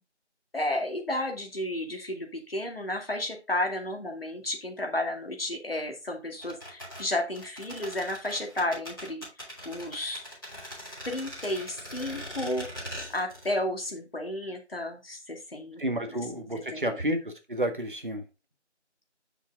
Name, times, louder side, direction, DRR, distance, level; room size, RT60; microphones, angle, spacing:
voice 1, 0.5-9.2 9.6-10.2 11.1-12.8 13.1-15.8 16.4-17.0, left 1 dB, 55° left, 2 dB, 2.4 m, -32 dB
sound 1, 6.4-13.6 13.8-13.9, equal, 5° left, 4.2 m, -41 dB
voice 2, 15.8-18.2, equal, 45° right, 6 dB, 1.5 m, -30 dB
8.2 x 6.3 x 3.6 m, 0.28 s
figure-of-eight pair, 180°, 36 cm